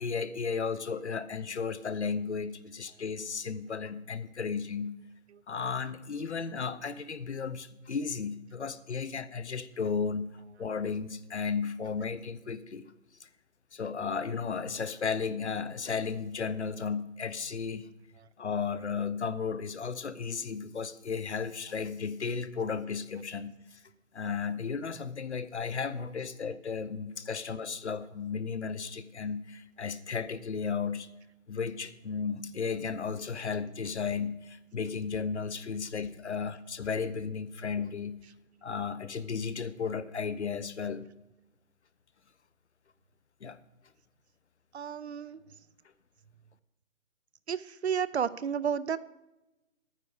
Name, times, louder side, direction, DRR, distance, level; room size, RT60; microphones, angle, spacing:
voice 1, 0.0-4.9 5.5-10.3 10.6-12.9 13.2-13.3 13.7-17.9 18.4-23.8 24.1-31.1 31.5-38.2 38.6-41.0 43.4-43.6, left 5 dB, 55° left, 15 dB, 0.7 m, -34 dB
voice 2, 44.7-45.4 47.5-49.0, right 7 dB, 55° right, 16 dB, 0.5 m, -31 dB
11.0 x 9.6 x 4.8 m, 0.97 s
hypercardioid pair, 180°, 41 cm